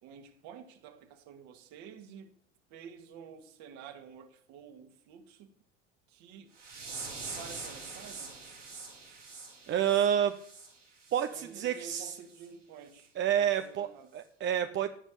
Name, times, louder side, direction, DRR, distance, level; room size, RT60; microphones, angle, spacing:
voice 1, 0.0-2.3 2.7-5.5 6.1-6.5 7.0-8.4 11.3-13.1 13.4-14.1, right 7 dB, 50° right, 2.1 m, -50 dB
sound 1, 6.5-11.3 11.6-11.9 12.3-12.5 12.9-13.1 13.5-13.6, right 4 dB, 85° right, 4.9 m, -44 dB
voice 2, 9.7-10.3 11.1-12.1 13.2-14.9, right 9 dB, 30° right, 0.8 m, -29 dB
17.5 x 6.3 x 8.3 m
figure-of-eight pair, 70°, 35 cm